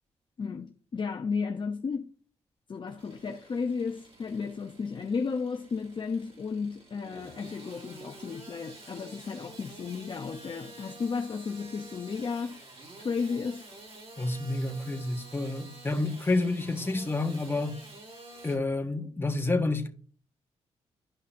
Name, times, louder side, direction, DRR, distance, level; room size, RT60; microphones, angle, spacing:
voice 1, 0.4-2.1 2.7-12.6 13.0-13.7, left 5 dB, 45° left, 0.7 m, -33 dB
Engine starting / Sawing, 2.8-18.6, right 2 dB, 50° right, 3.4 m, -49 dB
voice 2, 14.2-17.8 18.4-19.9, left 2 dB, 20° left, 1.5 m, -29 dB
11.5 x 5.4 x 2.7 m
cardioid pair, 75°, 12 cm